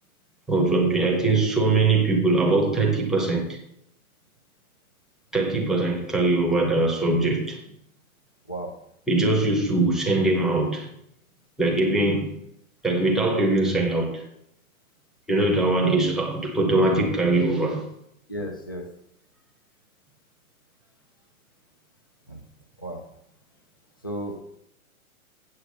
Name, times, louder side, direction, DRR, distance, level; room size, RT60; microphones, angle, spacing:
voice 1, 0.5-3.6 5.3-7.6 9.1-10.9 11.6-12.3 12.8-14.2 15.3-17.9, right 2 dB, ahead, 0.8 m, -22 dB
voice 2, 18.3-18.9 22.3-22.4 22.8-23.0 24.0-24.4, equal, 15° left, 0.3 m, -33 dB
8.5 x 7.7 x 6.2 m
hypercardioid pair, 160°, 43 cm